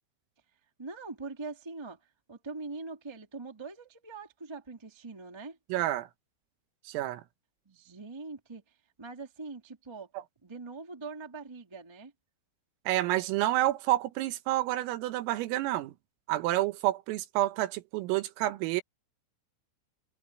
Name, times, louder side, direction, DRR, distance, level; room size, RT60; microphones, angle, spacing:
voice 1, 0.8-5.6 7.6-10.1 10.4-12.1, right 3 dB, 25° right, 0.5 m, -43 dB
voice 2, 5.7-6.1 6.9-7.2 12.9-15.9 16.3-18.8, right 15 dB, 90° right, 3.9 m, -29 dB
omnidirectional pair, 5.8 m